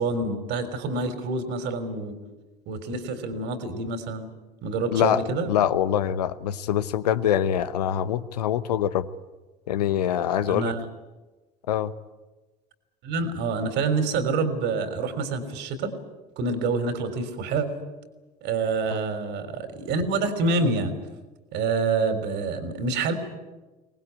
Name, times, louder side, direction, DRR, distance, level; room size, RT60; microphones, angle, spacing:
voice 1, 0.0-2.2 2.7-4.3 4.6-5.5 10.5-10.8 13.0-15.9 16.4-17.7 18.4-20.9 21.5-23.1, right 3 dB, 60° right, 9 dB, 3.6 m, -27 dB
voice 2, 4.9-9.1 9.7-10.7 11.7-11.9 18.9-19.0, left 10 dB, 75° left, 14 dB, 0.9 m, -24 dB
23.5 x 19.5 x 9.6 m, 1.2 s
figure-of-eight pair, 60°, 20 cm